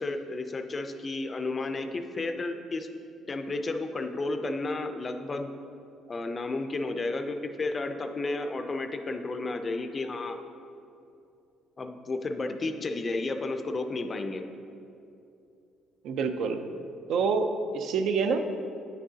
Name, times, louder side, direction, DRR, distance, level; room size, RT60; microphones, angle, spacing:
voice 1, 0.0-2.9 3.3-5.5 6.1-10.4 11.8-14.4, left 2 dB, 30° left, 7 dB, 0.4 m, -32 dB
voice 2, 16.0-16.6 17.1-18.4, right 5 dB, 70° right, 7 dB, 0.4 m, -27 dB
8.8 x 6.1 x 2.7 m, 2.7 s
cardioid pair, 120°, 0 cm